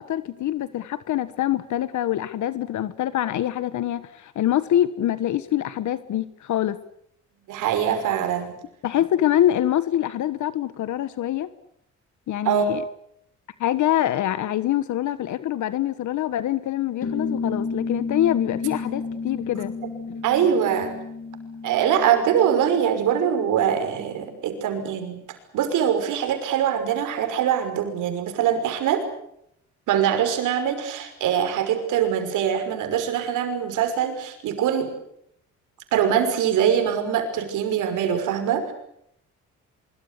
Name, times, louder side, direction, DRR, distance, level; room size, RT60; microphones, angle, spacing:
voice 1, 0.0-6.8 8.8-11.5 12.3-12.8 13.6-19.7, left 12 dB, 75° left, 14 dB, 1.4 m, -25 dB
voice 2, 7.5-8.6 12.4-12.7 20.2-20.9 21.6-25.2 25.5-29.0 29.9-34.9 35.9-38.7, right 9 dB, 90° right, 7 dB, 5.8 m, -23 dB
sound 1, 17.0-24.0, left 4 dB, 50° left, 3.8 m, -32 dB
24.5 x 23.5 x 8.3 m, 0.75 s
cardioid pair, 90°, 30 cm